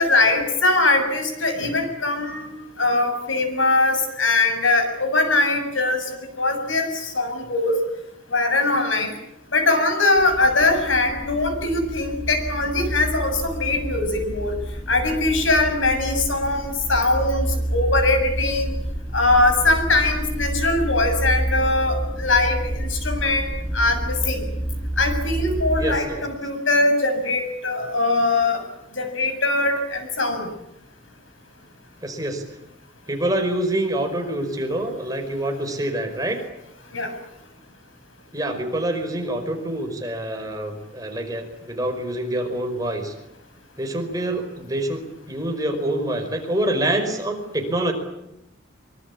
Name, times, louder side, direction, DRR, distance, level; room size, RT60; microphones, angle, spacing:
voice 1, 0.0-2.5 2.8-6.1 6.4-7.8 8.3-9.2 9.5-14.5 14.9-18.7 19.1-23.5 23.7-24.4 25.0-28.6 29.0-30.5 36.9-37.1, left 2 dB, 80° left, 7 dB, 7.4 m, -21 dB
sound 1, 10.2-26.0, right 1 dB, 20° left, 4.2 m, -28 dB
voice 2, 25.8-26.3 32.0-32.4 33.1-36.4 38.3-43.1 43.8-47.9, right 1 dB, 20° right, 4 dB, 5.2 m, -26 dB
24.5 x 24.5 x 8.7 m, 0.85 s
head